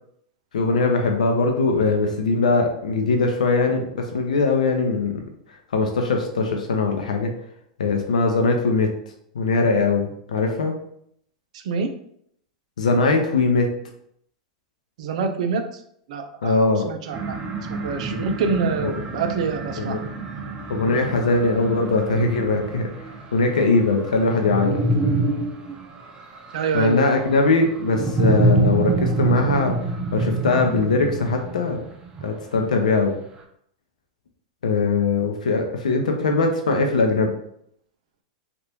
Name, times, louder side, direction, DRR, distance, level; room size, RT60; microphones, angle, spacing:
voice 1, 0.5-5.2 5.7-7.3 7.8-8.9 9.3-10.7 12.8-13.7 16.4-16.8 18.1-18.2 18.8-18.9 19.8-20.0 20.7-22.9 23.3-24.8 26.7-29.8 30.1-31.8 32.2-33.1 34.6-37.3, left 3 dB, 85° left, 3 dB, 0.6 m, -21 dB
voice 2, 11.5-11.9 15.0-15.8 16.1-17.4 17.7-20.0 26.5-27.0, right 4 dB, 65° right, 6 dB, 0.5 m, -26 dB
sound 1, 17.1-32.6, right 2 dB, 20° right, 0.6 m, -26 dB
3.4 x 2.5 x 2.9 m, 0.69 s
hypercardioid pair, 115°, 4 cm